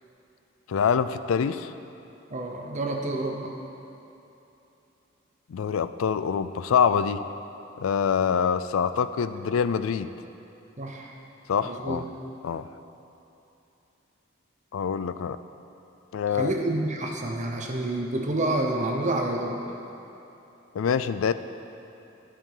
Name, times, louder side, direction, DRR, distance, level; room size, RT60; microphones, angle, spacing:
voice 1, 0.7-1.7 5.5-7.2 7.8-10.1 11.5-12.0 12.4-12.7 14.7-15.4 16.1-16.5 20.7-21.3, left 7 dB, 90° left, 12 dB, 0.4 m, -25 dB
voice 2, 2.3-3.5 10.8-11.1 11.6-12.0 16.3-19.6, right 2 dB, 35° right, 1 dB, 0.7 m, -28 dB
13.5 x 5.0 x 5.5 m, 3.0 s
head